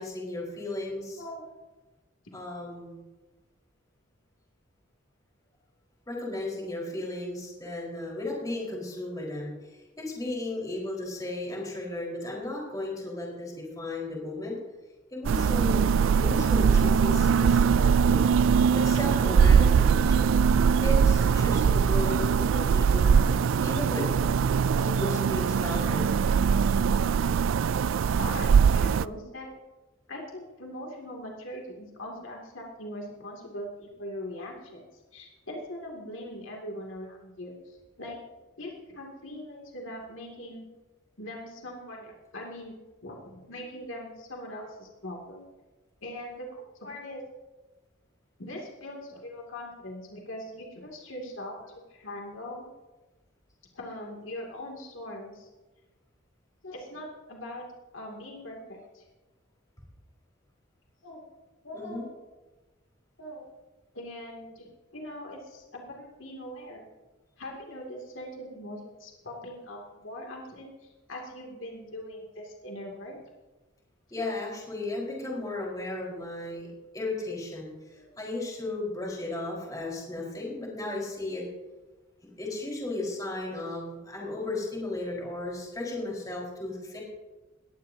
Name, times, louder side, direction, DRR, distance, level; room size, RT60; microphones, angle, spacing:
voice 1, 0.0-1.2 2.3-3.0 6.1-14.6 15.1-15.8 16.2-18.3 18.7-20.3 20.8-23.2 23.6-24.1 24.8-26.1 61.7-62.1 74.1-81.4 82.4-87.0, left 2 dB, 15° left, -3 dB, 4.6 m, -35 dB
sound 1, 15.2-29.0, right 6 dB, 75° right, 0.3 m, -22 dB
voice 2, 28.1-29.5 30.1-38.2 38.6-40.7 41.2-42.7 43.0-45.5 46.0-47.2 48.4-52.7 53.7-55.5 56.6-57.7 57.9-59.1 61.0-61.2 61.6-62.1 63.2-63.5 63.9-66.9 67.4-70.7 71.1-73.2 77.9-78.2, left 1 dB, 75° left, 0 dB, 2.6 m, -41 dB
20.0 x 15.0 x 2.8 m, 1.2 s
head